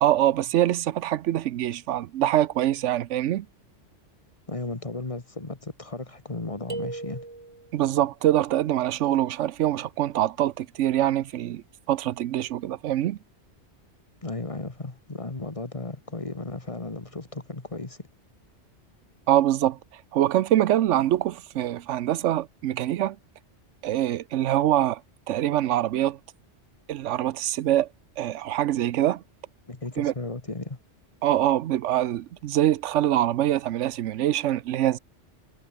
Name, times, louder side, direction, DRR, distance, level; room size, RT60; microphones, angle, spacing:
voice 1, 0.0-3.5 7.7-13.2 19.3-19.8 20.1-23.2 23.8-25.0 25.3-26.2 26.9-27.9 28.2-29.2 30.0-30.1 31.2-35.0, right 12 dB, 90° right, 1.0 m, -24 dB
voice 2, 4.5-7.2 14.2-18.1 29.7-30.8, left 2 dB, 30° left, 1.7 m, -35 dB
sound 1, 6.7-7.8, right 3 dB, 30° right, 1.5 m, -36 dB
omnidirectional pair, 1.2 m